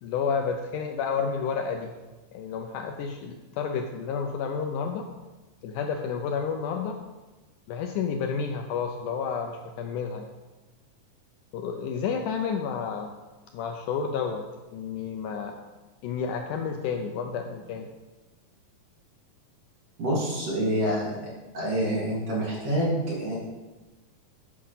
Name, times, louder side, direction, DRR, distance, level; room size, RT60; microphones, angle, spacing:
voice 1, 0.0-1.9 2.3-5.1 5.6-7.0 7.7-10.3 11.5-13.1 13.5-14.5 14.7-15.6 16.0-17.9, left 6 dB, 80° left, 4 dB, 1.9 m, -30 dB
voice 2, 20.0-21.2 21.5-23.4, equal, 45° right, -5 dB, 3.0 m, -27 dB
10.0 x 5.0 x 5.5 m, 1.2 s
omnidirectional pair, 4.0 m